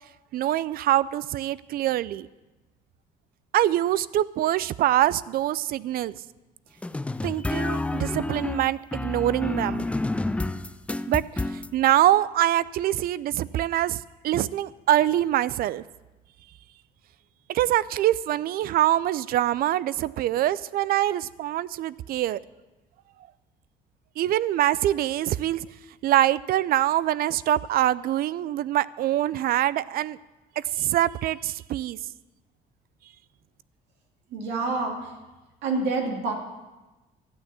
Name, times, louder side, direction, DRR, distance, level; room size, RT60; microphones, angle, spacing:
voice 1, 0.3-2.3 3.5-6.1 7.2-9.9 11.1-11.2 11.7-14.0 14.2-15.8 17.5-22.4 24.2-25.7 26.0-30.2 30.6-32.0, right 13 dB, 60° right, 19 dB, 0.4 m, -24 dB
sound 1, 6.8-11.7, left 2 dB, 5° left, 0.4 m, -29 dB
voice 2, 34.3-35.0 35.6-36.3, right 3 dB, 85° right, 1 dB, 2.6 m, -27 dB
13.0 x 8.8 x 7.0 m, 1.1 s
cardioid pair, 110°, 17 cm